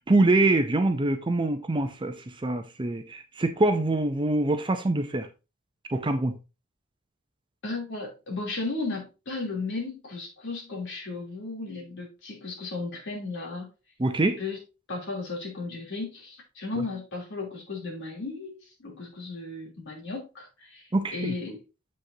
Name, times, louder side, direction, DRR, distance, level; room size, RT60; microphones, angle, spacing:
voice 1, 0.0-2.2 2.4-5.3 5.9-6.3 14.0-14.4 20.9-21.3, right 2 dB, 20° right, 0.5 m, -24 dB
voice 2, 7.6-13.7 14.4-14.6 14.9-21.6, left 3 dB, 55° left, 3.1 m, -35 dB
7.3 x 6.3 x 2.7 m
head